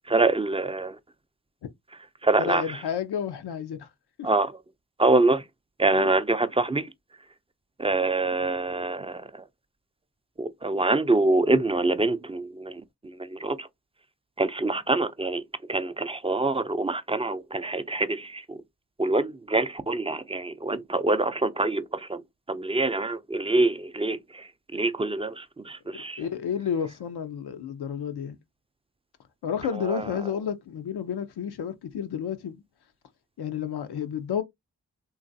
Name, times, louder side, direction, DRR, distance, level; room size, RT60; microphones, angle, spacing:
voice 1, 0.1-1.0 2.2-2.6 4.2-4.5 5.0-5.4 5.8-6.9 7.8-9.4 10.4-13.7 14.4-15.4 15.7-18.6 19.0-22.2 22.5-26.3 29.8-30.0, right 2 dB, 15° right, 0.4 m, -25 dB
voice 2, 2.4-3.9 4.2-4.3 5.9-6.1 25.9-28.4 29.4-32.6 33.4-34.4, left 8 dB, 90° left, 0.6 m, -31 dB
3.1 x 2.4 x 2.5 m
cardioid pair, 45°, 38 cm